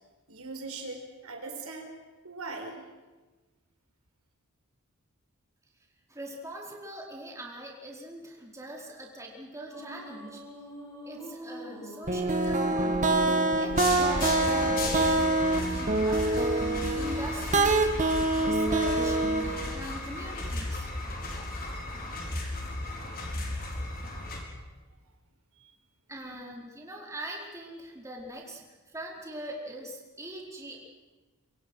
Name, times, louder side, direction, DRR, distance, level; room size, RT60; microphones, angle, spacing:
voice 1, 0.3-1.9 2.2-2.8 23.0-23.8 25.6-25.7, right 3 dB, 75° right, 3 dB, 4.8 m, -41 dB
voice 2, 6.1-10.4 11.0-19.2 19.7-20.9 26.1-28.6 28.9-30.8, right 1 dB, 15° right, -1 dB, 4.6 m, -42 dB
sound 1, 9.7-14.7, equal, 15° left, 7.5 m, -44 dB
sound 2, 12.1-19.7, right 2 dB, 35° right, 2.3 m, -25 dB
sound 3, 13.8-24.4, left 2 dB, 40° left, 4.8 m, -35 dB
27.0 x 24.5 x 6.4 m, 1.2 s
head